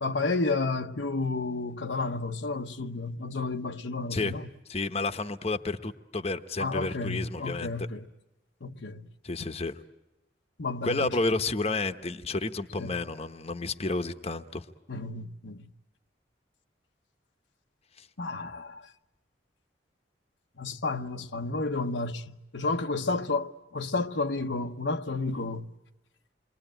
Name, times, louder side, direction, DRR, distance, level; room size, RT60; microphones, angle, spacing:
voice 1, 0.0-4.5 6.6-8.1 8.6-9.1 10.6-11.1 12.8-13.0 14.9-15.7 18.2-18.9 20.6-25.7, left 3 dB, 90° left, 1.1 m, -31 dB
voice 2, 4.7-7.9 9.2-9.7 10.8-14.6 18.0-18.1, left 3 dB, 35° left, 0.9 m, -31 dB
28.0 x 23.0 x 9.0 m
head